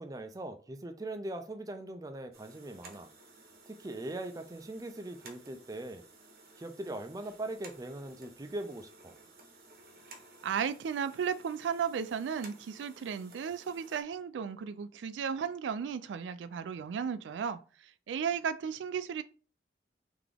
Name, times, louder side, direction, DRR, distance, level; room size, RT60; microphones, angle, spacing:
voice 1, 0.0-3.1 3.6-6.0 6.6-9.2, right 1 dB, 20° right, 0.4 m, -41 dB
sound 1, 2.3-14.0, right 3 dB, 55° right, 0.9 m, -56 dB
voice 2, 10.4-17.6 18.1-19.2, right 7 dB, 90° right, 0.3 m, -34 dB
3.8 x 3.5 x 3.4 m
head